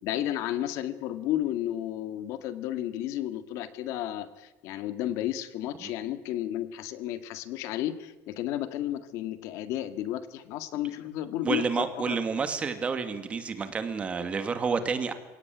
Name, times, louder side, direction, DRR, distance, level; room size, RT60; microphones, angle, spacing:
voice 1, 0.0-12.2, left 12 dB, 70° left, 11 dB, 2.0 m, -32 dB
voice 2, 11.4-15.1, right 5 dB, 25° right, 9 dB, 2.3 m, -29 dB
28.5 x 18.0 x 9.4 m, 1.1 s
cardioid pair, 170°, 5 cm